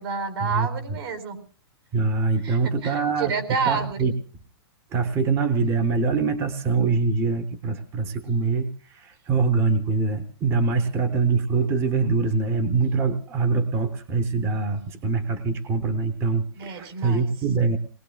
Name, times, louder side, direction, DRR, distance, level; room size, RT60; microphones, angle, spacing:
voice 1, 0.0-1.4 2.4-4.1 10.8-10.9 16.6-17.3, right 5 dB, 70° right, 7 dB, 4.5 m, -29 dB
voice 2, 1.9-3.3 3.6-4.1 4.9-17.8, right 4 dB, 20° right, 9 dB, 0.8 m, -24 dB
28.5 x 20.0 x 2.3 m, 0.39 s
hypercardioid pair, 165°, 14 cm